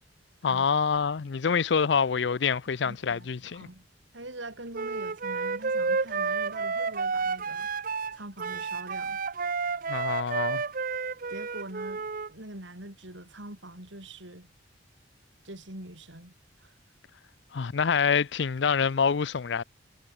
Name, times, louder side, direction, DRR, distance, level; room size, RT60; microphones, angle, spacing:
voice 1, 0.4-3.7 9.9-10.6 17.5-19.6, left 6 dB, 65° left, 0.5 m, -26 dB
voice 2, 2.8-3.9 4.1-7.7 8.1-9.2 11.3-14.5 15.4-16.3 16.6-16.7, right 1 dB, 75° right, 7.6 m, -44 dB
Wind instrument woodwind instrument, 4.7-12.3, right 4 dB, 50° right, 0.8 m, -31 dB
head